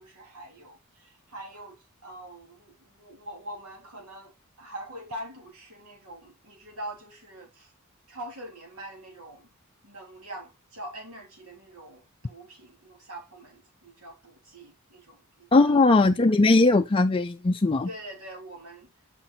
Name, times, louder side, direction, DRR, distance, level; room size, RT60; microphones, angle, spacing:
voice 1, 0.0-7.7 8.1-9.5 9.8-15.8 17.8-18.9, right 1 dB, 75° right, 3.1 m, -43 dB
voice 2, 15.5-17.9, left 3 dB, 25° left, 0.4 m, -19 dB
6.5 x 5.2 x 3.9 m
head